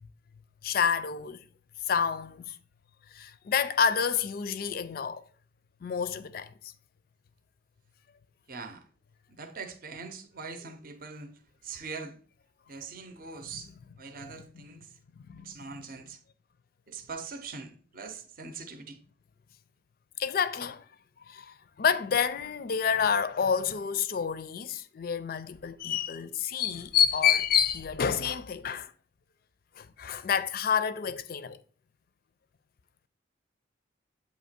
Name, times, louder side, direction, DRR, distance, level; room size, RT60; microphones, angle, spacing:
voice 1, 0.6-1.4 1.8-2.6 3.1-5.2 5.8-6.7 13.5-13.6 14.3-14.6 15.2-15.8 20.2-20.9 21.3-28.9 29.8-31.6, left 7 dB, 50° left, 0.4 m, -29 dB
voice 2, 8.5-8.8 9.3-12.2 12.7-13.7 14.0-14.9 15.4-16.2 16.9-19.0, right 4 dB, 45° right, 0.6 m, -42 dB
7.8 x 2.9 x 4.3 m
head